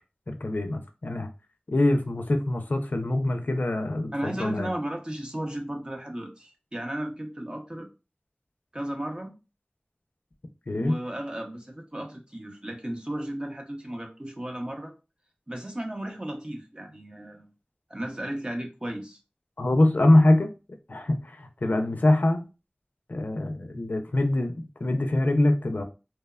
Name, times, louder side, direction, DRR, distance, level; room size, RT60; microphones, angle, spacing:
voice 1, 0.3-1.3 1.7-4.7 10.7-11.0 19.6-20.5 20.9-22.5 23.1-24.5 24.8-25.8, left 1 dB, 70° left, 0.4 m, -24 dB
voice 2, 4.1-7.9 8.7-9.3 10.8-14.9 15.5-17.5 17.9-19.2, right 1 dB, 30° right, 0.6 m, -34 dB
2.8 x 2.1 x 2.3 m
wide cardioid pair, 45°, 3 cm